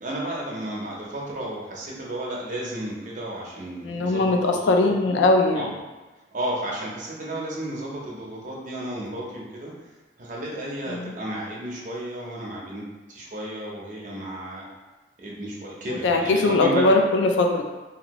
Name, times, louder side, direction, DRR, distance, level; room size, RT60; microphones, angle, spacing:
voice 1, 0.0-5.2 5.5-5.7 6.3-9.7 10.2-14.6 15.2-17.0, right 1 dB, 45° right, -3 dB, 0.7 m, -33 dB
voice 2, 3.8-5.7 10.9-11.1 15.9-17.6, left 2 dB, 85° left, 3 dB, 0.4 m, -20 dB
2.7 x 2.6 x 2.9 m, 1.2 s
head